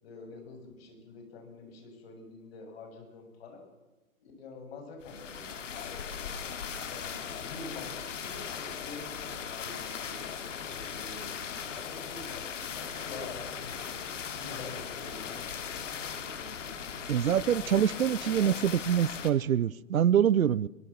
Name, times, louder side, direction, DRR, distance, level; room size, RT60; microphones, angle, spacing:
voice 1, 0.0-3.6 4.2-5.9 6.9-13.8 14.3-17.4 18.2-18.6, left 3 dB, 45° left, 7.7 m, -47 dB
sound 1, 5.0-19.3, left 7 dB, 60° left, 3.0 m, -38 dB
voice 2, 17.1-20.7, right 9 dB, 80° right, 0.8 m, -25 dB
22.0 x 21.0 x 7.4 m
hypercardioid pair, 140°, 41 cm